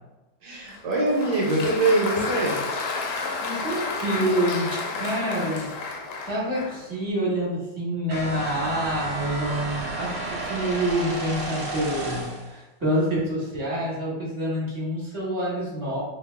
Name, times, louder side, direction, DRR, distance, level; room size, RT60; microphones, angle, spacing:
voice 1, 0.4-2.6, right 2 dB, 70° right, -3 dB, 1.2 m, -23 dB
Applause, 0.7-6.9, left 4 dB, 90° left, 1.3 m, -31 dB
voice 2, 3.4-5.7 6.3-16.0, equal, 15° right, -7 dB, 1.1 m, -27 dB
sound 1, 8.1-12.5, right 2 dB, 50° right, 1.0 m, -32 dB
2.8 x 2.6 x 3.3 m, 1.0 s
omnidirectional pair, 2.0 m